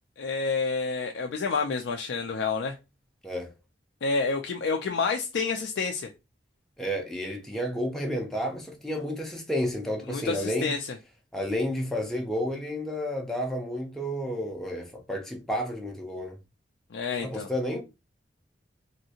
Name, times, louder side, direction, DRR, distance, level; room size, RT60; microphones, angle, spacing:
voice 1, 0.2-2.8 4.0-6.1 10.1-10.8 16.9-17.5, left 4 dB, 75° left, 0.4 m, -29 dB
voice 2, 3.2-3.5 6.8-10.8 11.3-16.4 17.2-17.8, equal, 5° left, 0.4 m, -31 dB
3.2 x 2.7 x 2.7 m
head